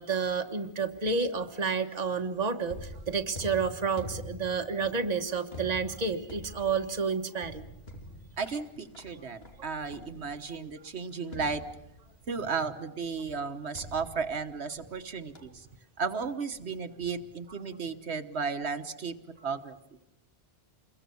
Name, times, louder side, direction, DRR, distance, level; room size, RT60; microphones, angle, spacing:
voice 1, 0.0-7.6, right 5 dB, 40° right, 5 dB, 1.4 m, -30 dB
sound 1, 2.6-10.6 11.3-12.3 13.7-15.0 15.3-15.7, left 1 dB, 70° left, 3.0 m, -46 dB
voice 2, 8.4-11.6 12.3-15.7 16.0-19.1 19.4-19.7, right 5 dB, 85° right, 7 dB, 1.5 m, -34 dB
27.5 x 22.0 x 7.0 m, 0.83 s
omnidirectional pair, 1.1 m